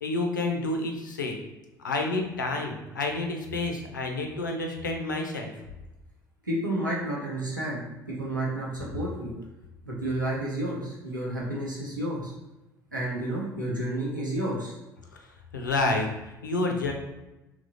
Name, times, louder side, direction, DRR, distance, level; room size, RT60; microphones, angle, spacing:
voice 1, 0.0-1.4 1.8-5.5 15.1-16.9, left 2 dB, 80° left, 3 dB, 0.5 m, -29 dB
voice 2, 6.4-7.8 8.1-9.3 9.9-12.3 12.9-14.7, right 1 dB, 90° right, -5 dB, 0.7 m, -31 dB
2.9 x 2.7 x 3.8 m, 1.0 s
figure-of-eight pair, 55°, 10 cm